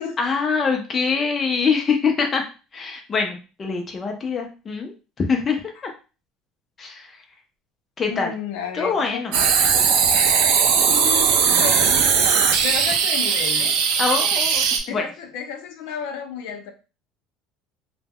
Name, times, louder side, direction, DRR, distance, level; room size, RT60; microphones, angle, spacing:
voice 1, 0.2-2.4 2.7-5.9 6.8-7.2 8.0-8.3 8.7-9.3 12.9-13.0 14.0-15.0, left 5 dB, 20° left, 2 dB, 0.4 m, -24 dB
voice 2, 8.1-9.3 10.9-13.7 14.1-14.3 14.9-16.7, left 7 dB, 80° left, 5 dB, 0.5 m, -32 dB
sound 1, 9.3-14.8, right 6 dB, 70° right, 0.4 m, -18 dB
2.1 x 2.0 x 3.4 m, 0.33 s
cardioid pair, 175°, 0 cm